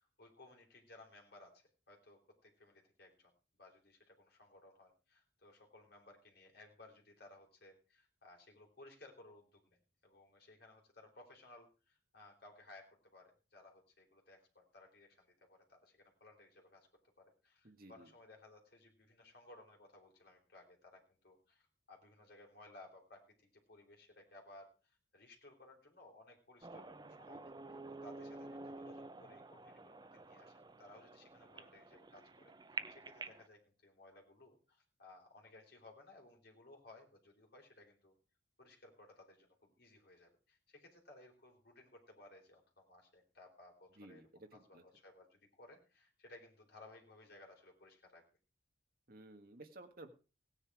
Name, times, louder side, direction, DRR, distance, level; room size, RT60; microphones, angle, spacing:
voice 1, 0.0-16.9 17.2-38.1 38.6-44.2 44.5-48.2, left 2 dB, 50° left, 1 dB, 3.8 m, -60 dB
voice 2, 17.6-18.1 44.0-44.8 49.1-50.1, right 2 dB, 45° right, 6 dB, 1.5 m, -55 dB
sound 1, 26.6-33.5, right 3 dB, 20° right, 0.6 m, -49 dB
16.5 x 9.8 x 4.8 m, 0.35 s
head